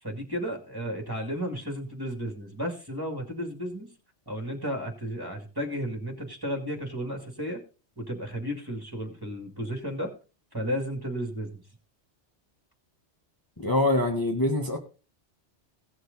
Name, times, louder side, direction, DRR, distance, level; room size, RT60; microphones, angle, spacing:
voice 1, 0.0-3.9 4.3-7.6 8.0-10.1 10.5-11.6, equal, 20° right, 2.2 m, -33 dB
voice 2, 13.6-14.8, left 2 dB, 20° left, 1.1 m, -24 dB
17.0 x 6.4 x 3.9 m
omnidirectional pair, 1.2 m